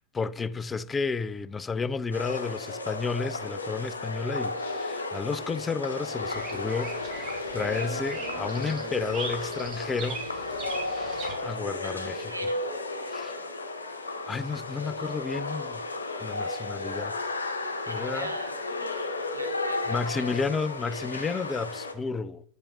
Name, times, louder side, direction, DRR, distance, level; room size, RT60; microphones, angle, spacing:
voice 1, 0.0-10.2 11.4-12.3 13.0-13.3 14.3-15.8 16.2-17.2 17.9-18.3 19.9-22.4, left 4 dB, 15° left, 0.3 m, -32 dB
sound 1, 2.1-21.9, left 2 dB, 75° left, 0.9 m, -33 dB
Bird vocalization bird call bird song, 6.2-11.3, right 4 dB, 30° right, 2.1 m, -40 dB
voice 2, 11.8-12.6 17.8-18.6 19.0-20.0 20.2-20.4, right 1 dB, 85° right, 1.4 m, -42 dB
8.6 x 5.2 x 4.8 m
figure-of-eight pair, 90°, 0 cm